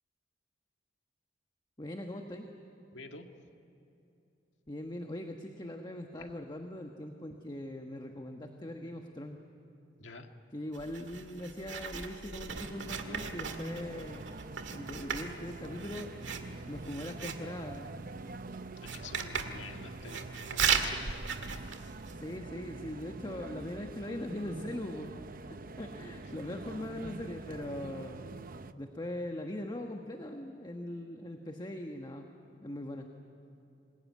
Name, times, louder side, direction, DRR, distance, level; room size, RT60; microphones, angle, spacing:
voice 1, 1.8-2.5 4.7-9.4 10.5-14.3 14.7-16.1 16.7-17.9 22.1-25.1 25.4-28.4 28.8-32.3 32.6-33.1, left 1 dB, 25° left, 3 dB, 1.3 m, -41 dB
voice 2, 2.9-3.3 10.0-10.3 18.8-21.0, left 3 dB, 90° left, 5 dB, 1.9 m, -48 dB
Writing, 10.7-22.4, right 6 dB, 80° right, 1.9 m, -37 dB
sound 1, 12.5-28.7, right 3 dB, 50° right, 0.8 m, -45 dB
26.0 x 21.0 x 9.5 m, 2.9 s
head